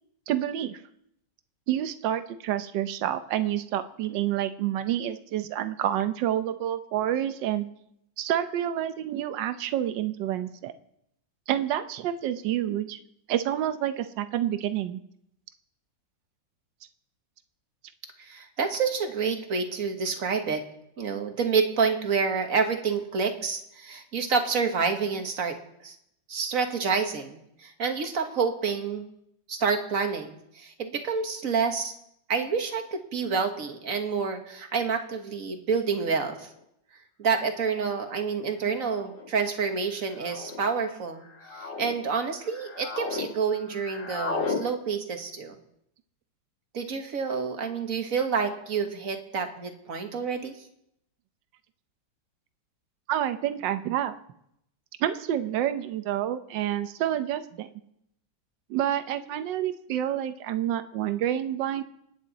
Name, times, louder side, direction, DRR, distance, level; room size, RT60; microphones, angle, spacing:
voice 1, 0.3-0.8 1.7-7.6 8.2-10.7 11.5-13.0 13.3-15.0 53.1-54.2 55.0-57.7 58.7-61.8, right 11 dB, 75° right, 10 dB, 1.4 m, -28 dB
voice 2, 18.2-20.6 21.0-25.6 25.8-26.0 26.3-29.1 29.5-31.9 32.3-36.5 37.2-41.2 41.5-45.6 46.7-50.5, right 5 dB, 50° right, 5 dB, 1.7 m, -28 dB
sound 1, 36.6-36.7 37.7-38.0 38.9-39.3 40.2-40.6 41.2-41.9 42.4-43.3 43.5-44.6, left 4 dB, 35° left, 1.2 m, -34 dB
27.0 x 9.0 x 4.1 m, 0.77 s
omnidirectional pair, 2.0 m